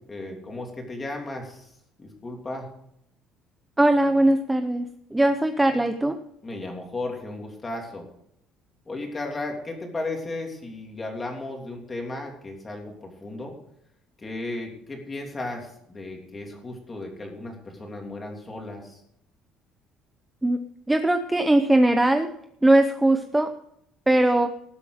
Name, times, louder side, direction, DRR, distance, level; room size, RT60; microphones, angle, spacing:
voice 1, 0.1-1.7 2.0-2.7 6.4-8.1 8.9-13.5 14.2-19.0, left 2 dB, 15° left, 1 dB, 3.1 m, -35 dB
voice 2, 3.8-4.9 5.1-6.2 20.4-20.6 20.9-22.3 22.6-23.5 24.1-24.5, right 1 dB, 5° right, 7 dB, 0.7 m, -20 dB
19.0 x 8.2 x 5.0 m, 0.74 s
cardioid pair, 180°, 0 cm